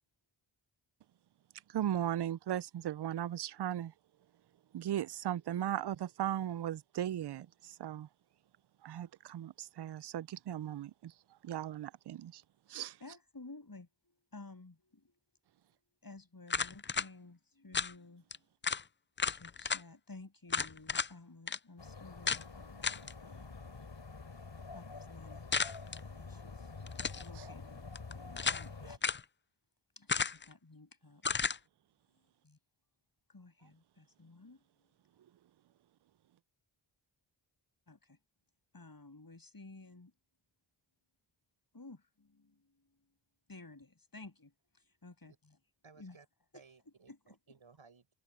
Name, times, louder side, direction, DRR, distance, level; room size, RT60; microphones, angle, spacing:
voice 1, 1.7-3.9 4.7-8.1 8.8-11.1 11.4-12.4 12.7-13.0, right 11 dB, 55° right, 0.5 m, -37 dB
voice 2, 13.0-15.1 16.0-18.5 19.4-22.8 23.2-23.8 24.7-26.7 27.1-29.0 30.0-31.2 32.4-32.6 33.3-34.6 37.9-38.2 38.7-40.1 41.7-43.0 43.5-45.6 46.0-46.2 47.1-47.4, left 3 dB, 45° left, 7.6 m, -54 dB
sound 1, 16.5-17.1 17.7-17.9 18.3-18.4 18.6-18.8 19.2-19.8 20.5-21.1 21.5-21.6 22.3-22.4 22.8-23.1 25.5-26.0 26.9-27.3 27.9-28.7 29.0-29.2 30.1-30.5 31.2-31.6, left 5 dB, 25° left, 0.4 m, -33 dB
sound 2, 21.8-29.0, left 4 dB, 60° left, 4.2 m, -48 dB
voice 3, 45.8-46.3 46.5-48.1, right 5 dB, 75° right, 7.8 m, -60 dB
cardioid pair, 50°, 49 cm